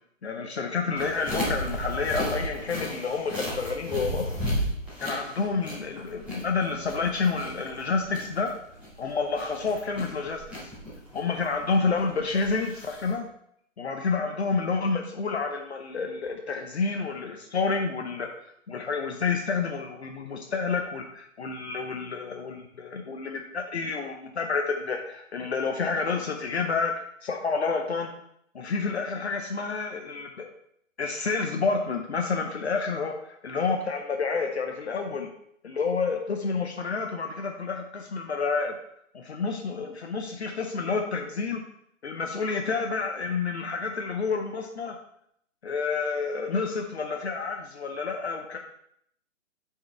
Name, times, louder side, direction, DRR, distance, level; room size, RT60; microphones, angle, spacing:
voice 1, 0.2-4.3 5.0-8.5 9.0-10.7 11.1-13.2 13.8-18.3 18.7-26.9 27.2-28.1 28.5-30.5 31.0-35.3 35.6-38.7 39.1-41.6 42.0-45.0 45.6-48.6, left 4 dB, 55° left, 3 dB, 0.8 m, -29 dB
sound 1, 1.0-13.1, equal, 5° right, 2.1 m, -35 dB
7.5 x 4.8 x 3.4 m, 0.71 s
figure-of-eight pair, 130°, 39 cm